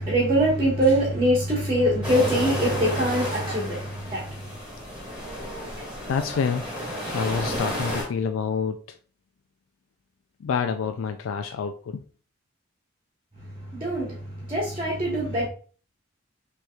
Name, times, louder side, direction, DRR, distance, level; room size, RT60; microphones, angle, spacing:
voice 1, 0.0-4.3 13.7-14.1 14.5-15.5, right 1 dB, 25° right, 1.3 m, -23 dB
sound 1, 2.0-8.0, equal, 5° right, 2.1 m, -32 dB
voice 2, 6.1-6.7 7.1-8.8 10.4-12.0, left 6 dB, 85° left, 0.3 m, -27 dB
6.1 x 3.0 x 2.3 m
head